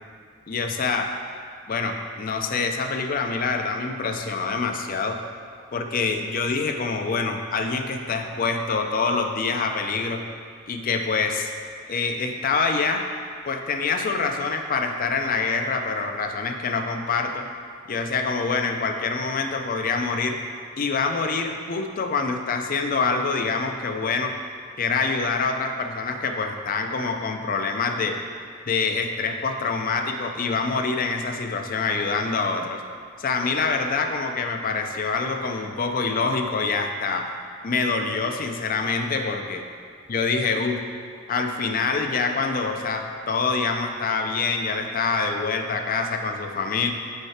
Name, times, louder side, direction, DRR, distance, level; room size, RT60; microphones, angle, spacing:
voice 1, 0.5-1.1 1.7-5.2 5.7-10.2 10.7-11.5 11.9-13.0 13.5-17.5 17.9-20.4 20.8-24.3 24.8-28.2 28.7-32.8 33.2-37.3 37.6-39.7 40.1-40.8 41.3-46.9, left 4 dB, 45° left, 5 dB, 0.5 m, -25 dB
6.6 x 4.7 x 4.3 m, 2.1 s
head